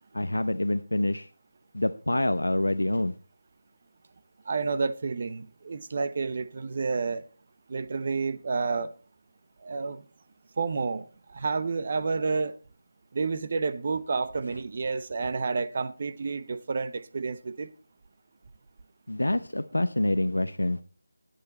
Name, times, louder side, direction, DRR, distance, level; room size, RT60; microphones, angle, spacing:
voice 1, 0.1-1.3 1.7-3.1 19.1-20.8, left 1 dB, 90° left, 0.8 m, -26 dB
voice 2, 4.4-7.2 7.7-8.9 9.6-10.0 10.6-12.6 13.1-17.7, right 4 dB, 40° right, 0.9 m, -30 dB
19.0 x 6.8 x 4.2 m
figure-of-eight pair, 165°, 0 cm